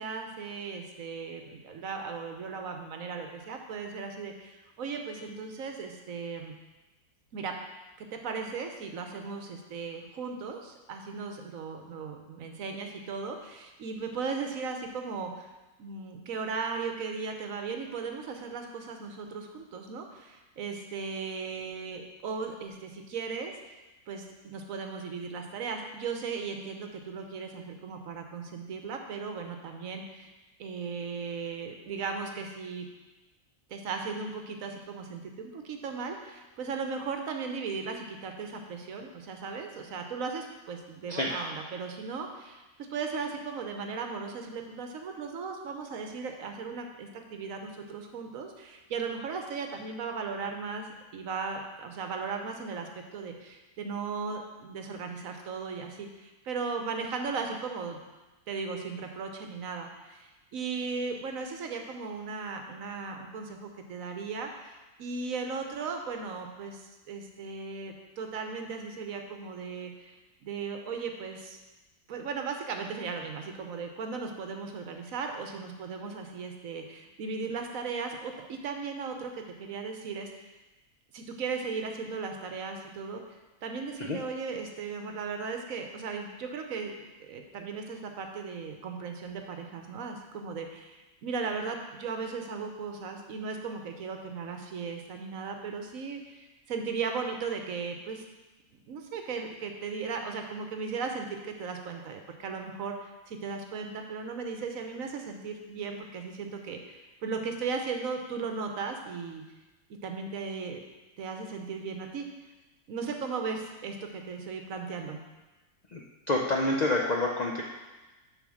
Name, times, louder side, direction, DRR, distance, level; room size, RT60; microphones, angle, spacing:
voice 1, 0.0-6.5 7.3-7.5 8.0-15.5 15.8-23.8 24.1-30.3 30.6-32.9 33.7-42.6 42.9-58.0 58.5-71.6 72.1-80.5 81.1-98.2 98.9-109.4 110.0-110.8 111.2-112.3 112.9-115.2, right 5 dB, 65° right, 4 dB, 1.1 m, -37 dB
voice 2, 116.3-117.6, left 2 dB, 60° left, -1 dB, 0.4 m, -27 dB
7.0 x 3.9 x 6.3 m, 1.1 s
omnidirectional pair, 1.6 m